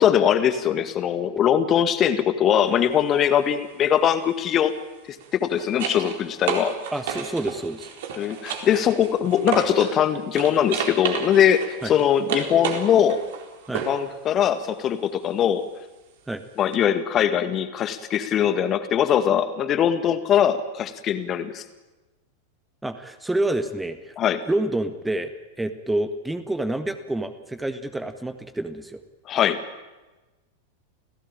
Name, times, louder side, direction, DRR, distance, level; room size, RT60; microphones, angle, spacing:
voice 1, 0.0-4.7 5.1-6.8 8.2-13.2 13.9-15.6 16.6-21.6 24.2-24.4 29.3-29.6, left 9 dB, 30° left, 11 dB, 1.9 m, -21 dB
sound 1, 2.5-2.8 5.1-10.0 10.3-14.1 16.7-16.8, right 7 dB, 55° right, 4.0 m, -32 dB
voice 2, 6.9-7.9 11.8-11.9 13.7-13.9 16.3-16.4 22.8-24.1 24.5-25.3 25.6-29.0, right 1 dB, 5° right, 9 dB, 1.6 m, -28 dB
29.0 x 17.0 x 9.0 m, 1.1 s
figure-of-eight pair, 90°, 0 cm